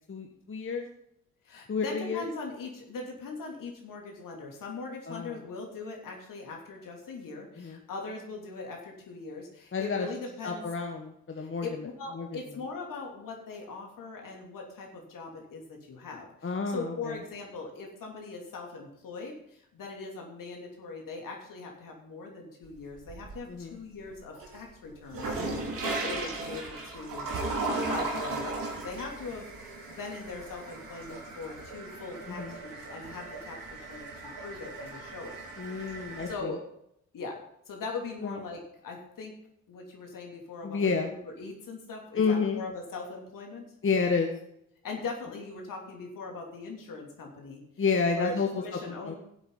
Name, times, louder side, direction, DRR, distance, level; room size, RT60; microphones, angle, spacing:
voice 1, 0.1-0.9 1.7-2.2 5.1-5.4 7.6-7.8 9.7-10.1 10.4-11.9 12.1-12.3 16.4-17.2 23.5-23.8 25.3-25.6 32.3-32.5 35.6-36.5 38.2-38.4 40.6-41.1 42.2-42.6 43.8-44.4 47.8-48.5 48.9-49.1, left 5 dB, 35° left, 3 dB, 1.4 m, -30 dB
voice 2, 1.4-10.6 11.3-27.3 27.7-35.4 35.7-36.6 37.1-37.3 37.7-39.3 39.7-43.6 44.8-47.6 48.1-49.2, left 3 dB, 55° left, 1 dB, 3.0 m, -41 dB
sound 1, 22.6-23.6 24.0-36.3, right 3 dB, 60° right, 2.9 m, -37 dB
15.5 x 8.0 x 4.0 m, 0.75 s
figure-of-eight pair, 40°, 38 cm